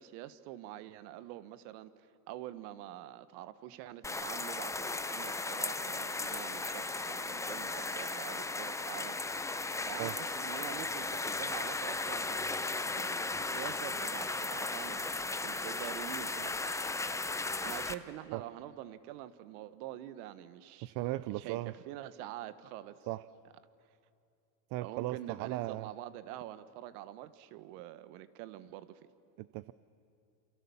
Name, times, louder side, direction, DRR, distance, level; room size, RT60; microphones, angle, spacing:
voice 1, 0.0-9.2 9.5-9.6 9.9-15.2 15.4-16.9 17.6-20.9 21.3-23.0 24.8-29.0, right 13 dB, 65° right, 14 dB, 1.4 m, -46 dB
sound 1, 4.0-17.9, left 3 dB, 5° left, 0.7 m, -36 dB
voice 2, 20.8-21.7 23.1-23.2 24.7-25.9 29.4-29.7, right 17 dB, 45° right, 16 dB, 0.6 m, -37 dB
28.0 x 27.0 x 7.1 m, 2.5 s
supercardioid pair, 120°, 49 cm